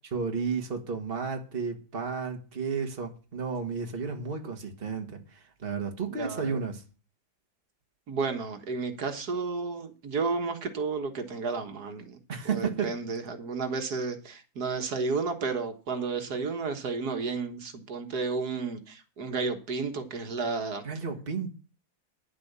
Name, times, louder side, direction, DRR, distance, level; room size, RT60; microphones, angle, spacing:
voice 1, 0.1-6.8 12.3-12.9 20.8-21.5, right 5 dB, 35° right, 1.8 m, -32 dB
voice 2, 6.2-6.6 8.1-12.2 12.5-20.8, right 4 dB, 80° right, 1.9 m, -32 dB
10.5 x 7.8 x 6.8 m
omnidirectional pair, 1.7 m